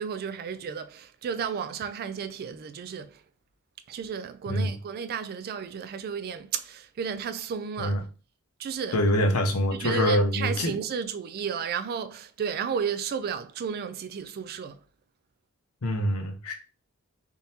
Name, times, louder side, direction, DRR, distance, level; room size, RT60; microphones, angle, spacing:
voice 1, 0.0-3.2 3.9-8.0 8.6-9.0 9.7-14.8, right 6 dB, 45° right, 0.3 m, -33 dB
voice 2, 8.9-10.7 15.8-16.5, equal, 80° left, 0.7 m, -25 dB
3.6 x 2.7 x 2.7 m
head